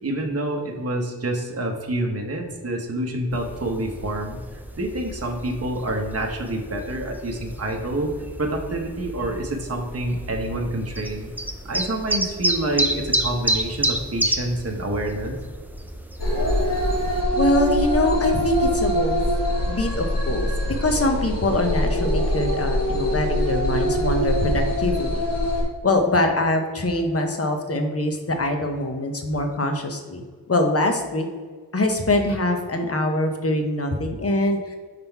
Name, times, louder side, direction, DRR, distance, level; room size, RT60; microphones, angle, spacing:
voice 1, 0.0-4.4 4.7-11.3 11.6-15.4, right 1 dB, 35° right, 2 dB, 0.9 m, -27 dB
sound 1, 3.3-17.2, right 1 dB, 5° right, 0.4 m, -30 dB
sound 2, 16.2-25.6, equal, 70° left, 1.7 m, -23 dB
voice 2, 17.4-19.2 19.7-25.2 25.8-30.2 30.5-31.3 31.7-34.8, left 2 dB, 35° left, 4 dB, 0.8 m, -23 dB
5.8 x 3.7 x 4.5 m, 1.5 s
wide cardioid pair, 75°, 43 cm